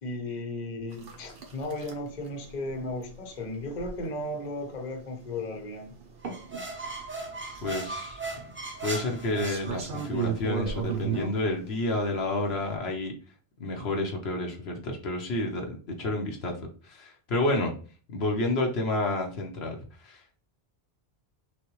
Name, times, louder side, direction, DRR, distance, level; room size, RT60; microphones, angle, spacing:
voice 1, 0.0-6.0, left 2 dB, 45° left, 3 dB, 0.9 m, -35 dB
sound 1, 0.9-12.8, right 7 dB, 65° right, 1.1 m, -38 dB
sound 2, 6.2-10.3, right 2 dB, 15° right, 0.7 m, -38 dB
voice 2, 7.6-8.2 8.8-13.1 13.6-17.7 18.1-20.4, left 2 dB, 75° left, 2 dB, 1.1 m, -30 dB
6.2 x 2.2 x 3.0 m, 0.39 s
omnidirectional pair, 1.1 m